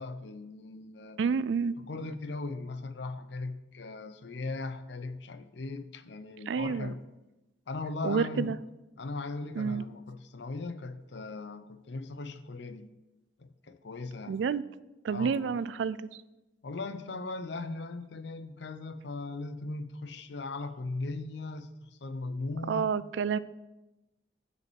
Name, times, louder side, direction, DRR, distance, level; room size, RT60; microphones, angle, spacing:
voice 1, 0.0-1.2 1.8-7.0 7.7-8.5 9.0-12.9 13.4-14.4 15.1-15.5 16.6-22.9, left 3 dB, 65° left, 11 dB, 0.6 m, -38 dB
voice 2, 1.2-1.8 6.5-6.9 8.0-8.6 9.6-9.8 14.3-14.6 15.0-16.0 22.7-23.4, right 6 dB, 70° right, 17 dB, 0.3 m, -29 dB
6.5 x 5.2 x 6.9 m, 1.0 s
head